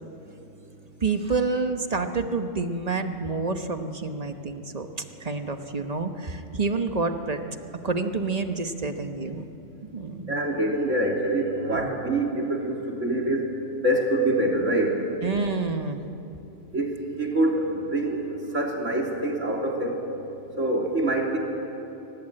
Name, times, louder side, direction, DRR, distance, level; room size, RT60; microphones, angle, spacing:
voice 1, 1.0-4.9 5.2-7.4 7.8-9.4 9.9-10.4 11.7-11.9 15.2-16.0, right 4 dB, 35° right, 7 dB, 1.1 m, -28 dB
voice 2, 10.3-13.5 13.8-14.9 16.7-16.9 17.2-18.2 18.5-20.0 20.6-21.4, right 1 dB, 75° right, 0 dB, 3.3 m, -25 dB
24.0 x 18.0 x 8.9 m, 2.9 s
omnidirectional pair, 1.3 m